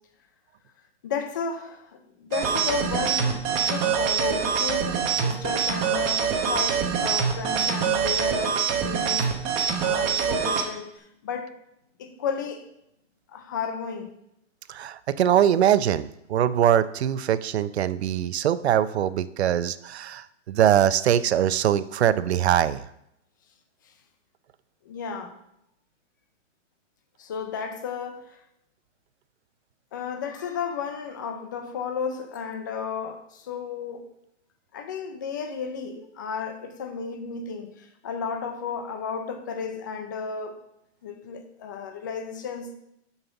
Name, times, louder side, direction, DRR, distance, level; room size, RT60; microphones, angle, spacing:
voice 1, 1.0-11.5 12.0-12.7 13.3-14.1 24.8-25.4 27.2-28.4 29.9-34.1 34.7-40.6 41.0-42.7, left 6 dB, 15° left, 0.4 m, -33 dB
sound 1, 2.3-10.6, right 6 dB, 20° right, 0.9 m, -24 dB
voice 2, 14.7-22.8, right 10 dB, 60° right, 0.6 m, -22 dB
6.9 x 5.6 x 6.9 m
hypercardioid pair, 155°, 37 cm